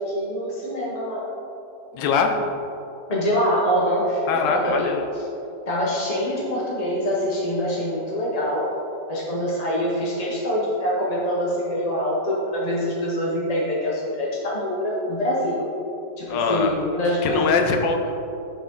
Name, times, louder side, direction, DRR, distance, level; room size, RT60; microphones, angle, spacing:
voice 1, 0.1-1.2 3.1-4.9 5.7-8.7 9.1-15.7 16.2-17.5, equal, 35° left, -5 dB, 0.6 m, -24 dB
voice 2, 1.9-2.4 4.3-5.0 16.3-16.7 17.2-18.1, left 5 dB, 80° left, 4 dB, 1.4 m, -22 dB
8.4 x 5.9 x 3.8 m, 2.8 s
omnidirectional pair, 2.0 m